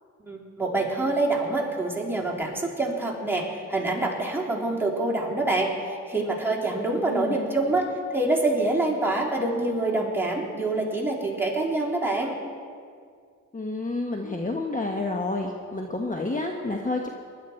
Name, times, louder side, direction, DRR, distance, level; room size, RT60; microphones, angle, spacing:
voice 1, 0.2-12.4, right 2 dB, 5° right, -3 dB, 3.4 m, -26 dB
voice 2, 7.1-7.4 13.5-17.1, left 2 dB, 25° left, 2 dB, 1.2 m, -29 dB
19.5 x 11.5 x 4.5 m, 2.1 s
cardioid pair, 65°, 32 cm